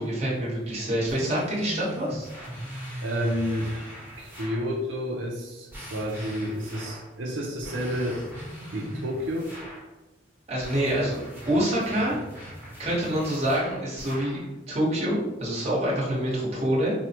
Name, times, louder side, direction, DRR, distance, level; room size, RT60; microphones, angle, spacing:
voice 1, 0.0-2.3 10.5-11.2 11.5-12.2 12.8-16.9, right 1 dB, 35° right, -6 dB, 1.1 m, -26 dB
sound 1, 1.1-4.7 5.7-7.1 7.6-9.9 10.6-14.5, equal, 10° right, 1.1 m, -40 dB
voice 2, 3.0-3.7 4.2-8.2 8.7-9.5, equal, 85° right, -1 dB, 0.5 m, -30 dB
4.5 x 2.1 x 2.8 m, 1.0 s
head